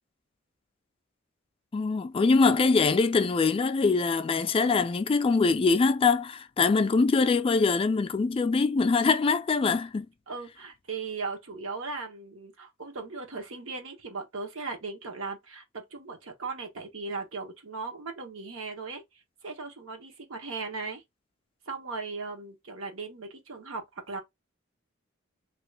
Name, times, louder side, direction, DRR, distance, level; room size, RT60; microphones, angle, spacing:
voice 1, 1.7-10.1, left 4 dB, 25° left, 0.3 m, -23 dB
voice 2, 2.4-2.7 10.3-21.0 21.7-24.2, right 4 dB, 85° right, 1.1 m, -38 dB
2.9 x 2.4 x 3.2 m
head